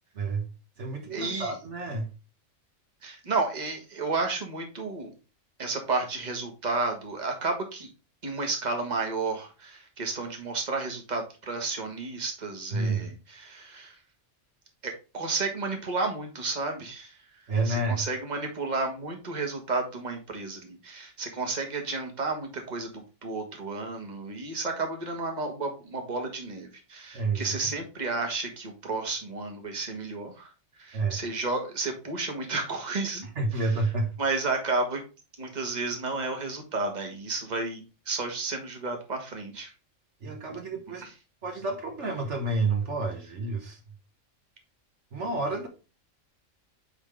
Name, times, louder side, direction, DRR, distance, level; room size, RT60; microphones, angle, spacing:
voice 1, 0.1-0.5 0.8-2.1 12.7-13.1 17.5-18.1 27.1-27.7 30.9-31.2 33.2-34.2 40.2-41.0 41.4-43.8 45.1-45.7, right 3 dB, 70° right, 1.5 m, -29 dB
voice 2, 1.1-1.5 3.0-5.1 5.6-7.9 8.2-14.0 14.8-17.2 17.6-22.9 23.2-30.5 30.8-33.3 34.2-35.0 35.4-39.7 41.0-41.1, right 3 dB, 35° right, 1.6 m, -32 dB
9.0 x 3.7 x 3.6 m
omnidirectional pair, 1.3 m